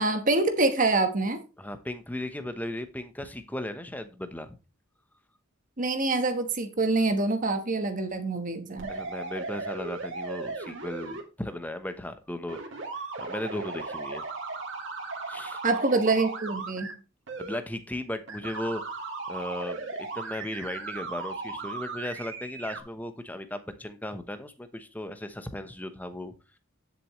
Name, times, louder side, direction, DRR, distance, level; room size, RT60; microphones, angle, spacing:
voice 1, 0.0-1.4 5.8-8.9 15.6-16.9, right 3 dB, 40° right, 1.3 m, -25 dB
voice 2, 1.6-4.5 8.9-12.6 12.9-14.2 15.3-15.6 17.4-18.8 19.3-26.3, left 1 dB, 10° left, 1.0 m, -36 dB
sound 1, 8.8-11.2 12.5-16.9 17.3-17.6 18.3-22.8, right 3 dB, 60° right, 3.1 m, -36 dB
10.5 x 7.3 x 3.2 m
head